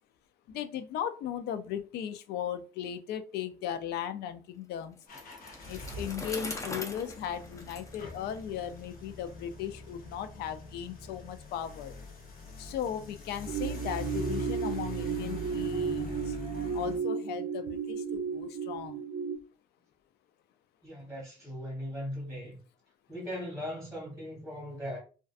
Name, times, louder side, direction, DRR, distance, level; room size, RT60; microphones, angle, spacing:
voice 1, 0.5-5.0 5.7-12.0 12.6-16.4 16.7-19.0, left 9 dB, 75° left, 0.4 m, -37 dB
Bicycle, 5.0-8.8, left 2 dB, 20° left, 0.5 m, -42 dB
sound 1, 5.1-17.0, equal, 55° left, 0.8 m, -42 dB
sound 2, 13.5-19.4, right 6 dB, 35° right, 0.4 m, -34 dB
voice 2, 20.8-22.6 23.1-25.0, equal, ahead, 1.1 m, -39 dB
2.5 x 2.3 x 2.4 m
cardioid pair, 110°, 17 cm